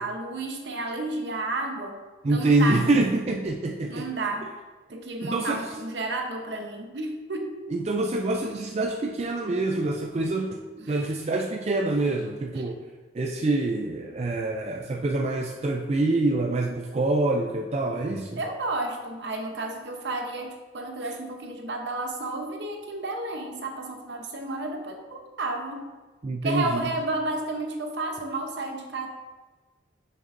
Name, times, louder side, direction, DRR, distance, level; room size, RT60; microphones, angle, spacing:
voice 1, 0.0-2.0 2.3-3.0 3.9-4.5 4.9-7.5 10.8-11.0 12.6-12.7 18.4-25.9 26.4-29.1, right 2 dB, 65° right, 3 dB, 0.8 m, -32 dB
voice 2, 2.2-4.1 5.2-5.6 7.7-10.6 10.9-12.8 13.1-18.4 26.2-26.9, right 2 dB, 35° right, 1 dB, 0.4 m, -26 dB
6.6 x 6.5 x 2.6 m, 1.3 s
head